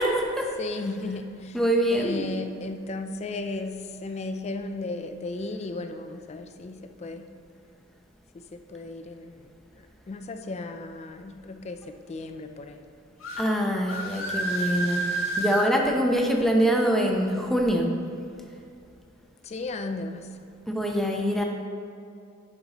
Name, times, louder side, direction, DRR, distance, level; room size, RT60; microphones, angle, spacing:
voice 1, 0.0-0.4 1.5-2.2 13.4-15.0 15.4-17.9 20.7-21.4, equal, ahead, 0 dB, 0.7 m, -24 dB
voice 2, 0.6-1.6 1.9-7.3 8.3-12.8 19.4-20.3, left 3 dB, 35° left, 7 dB, 0.4 m, -35 dB
sound 1, 13.2-13.4 13.9-15.7, right 2 dB, 85° left, 1.7 m, -29 dB
9.5 x 5.6 x 2.9 m, 2.5 s
head